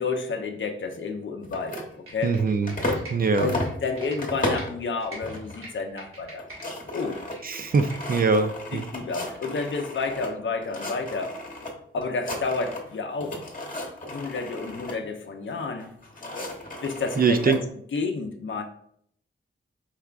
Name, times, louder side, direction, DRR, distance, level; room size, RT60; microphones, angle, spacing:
voice 1, 0.0-1.8 2.1-2.4 3.4-6.5 6.9-7.2 8.7-11.3 11.9-13.4 14.0-15.9 16.8-17.6 17.9-18.6, left 4 dB, 65° left, 5 dB, 0.6 m, -30 dB
sound 1, 1.4-3.1 3.4-4.8 5.2-5.7 6.0-6.1 6.3-10.3 10.6-11.7 12.0-12.9 13.2-15.0 15.8-17.6, left 1 dB, 40° left, 1.0 m, -34 dB
Computer keyboard, 1.9-4.7 5.0-6.7 7.0-8.4 8.8-8.9, right 2 dB, 85° right, 1.6 m, -45 dB
voice 2, 2.2-2.8 3.1-3.5 7.4-8.8 17.2-17.6, right 4 dB, 45° right, 8 dB, 0.4 m, -23 dB
4.7 x 3.4 x 2.4 m, 0.67 s
wide cardioid pair, 105°, 21 cm